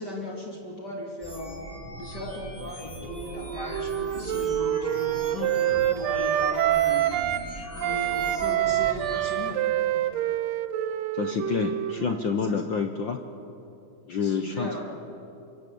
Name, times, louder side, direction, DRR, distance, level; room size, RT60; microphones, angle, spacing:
voice 1, 0.0-1.5 2.0-9.6 9.9-10.1 12.4-12.6 14.2-14.8, left 1 dB, 35° left, -1 dB, 3.0 m, -37 dB
sound 1, 1.2-9.3, equal, 15° left, 5.0 m, -40 dB
Wind instrument woodwind instrument, 3.1-7.5 7.8-12.3, right 12 dB, 70° right, 1.9 m, -26 dB
voice 2, 11.1-13.2 14.1-14.8, left 5 dB, 65° left, 6 dB, 1.2 m, -28 dB
27.0 x 23.0 x 8.6 m, 2.7 s
omnidirectional pair, 3.5 m